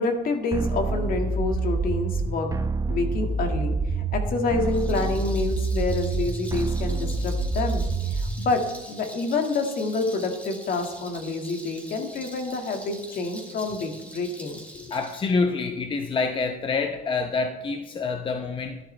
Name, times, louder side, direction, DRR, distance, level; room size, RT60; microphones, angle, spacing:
voice 1, 0.0-2.5 2.9-7.8 8.1-14.9, left 3 dB, 60° left, 4 dB, 2.0 m, -28 dB
sound 1, 0.5-8.5, right 3 dB, 20° right, 0.7 m, -27 dB
Rattle, 4.6-15.2, equal, 10° left, 3.0 m, -45 dB
voice 2, 14.9-18.8, left 4 dB, 30° left, 5 dB, 0.8 m, -27 dB
13.0 x 11.0 x 3.3 m, 1.2 s
cardioid pair, 110°, 17 cm